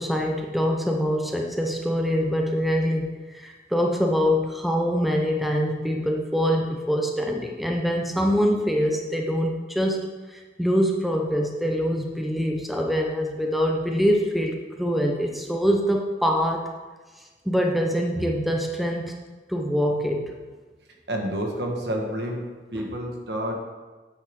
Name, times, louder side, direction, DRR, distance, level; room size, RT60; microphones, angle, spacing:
voice 1, 0.0-16.7 17.5-19.2 19.5-20.3, equal, ahead, 1 dB, 0.7 m, -24 dB
voice 2, 21.1-23.6, equal, 65° right, 1 dB, 1.6 m, -29 dB
9.2 x 8.1 x 3.7 m, 1.3 s
head